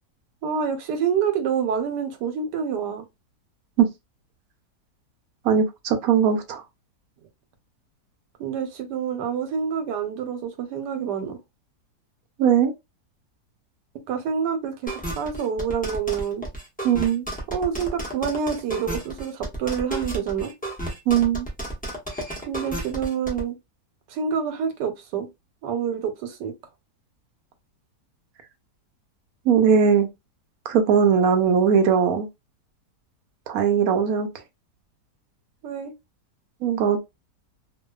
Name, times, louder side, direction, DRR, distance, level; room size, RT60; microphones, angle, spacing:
voice 1, 0.4-3.0 8.4-11.4 14.1-16.4 17.5-20.5 22.5-23.6 24.1-25.3 25.6-26.5 35.6-35.9, right 7 dB, 90° right, 1.2 m, -27 dB
voice 2, 5.4-6.6 12.4-12.7 16.8-17.2 21.1-21.5 29.5-30.1 30.7-32.3 33.5-34.3 36.6-37.0, right 7 dB, 70° right, 0.9 m, -19 dB
sound 1, 14.9-23.4, right 1 dB, 10° left, 0.4 m, -32 dB
2.7 x 2.3 x 2.2 m
omnidirectional pair, 1.8 m